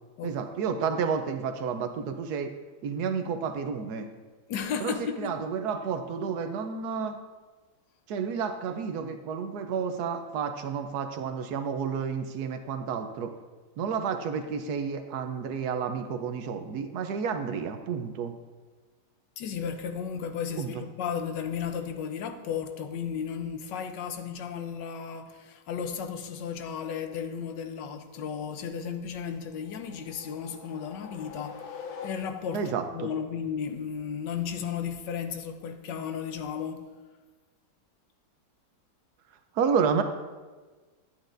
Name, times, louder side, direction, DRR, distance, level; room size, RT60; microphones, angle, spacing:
voice 1, 0.2-2.5 2.8-4.1 4.8-7.2 8.1-13.3 13.8-18.3 20.6-20.7 32.5-33.1 39.6-40.0, right 6 dB, 70° right, 1.1 m, -30 dB
voice 2, 4.5-5.4 19.4-36.9, left 7 dB, 90° left, 1.4 m, -34 dB
sound 1, 29.4-32.7, left 5 dB, 65° left, 1.3 m, -44 dB
11.0 x 9.0 x 2.5 m
omnidirectional pair, 1.9 m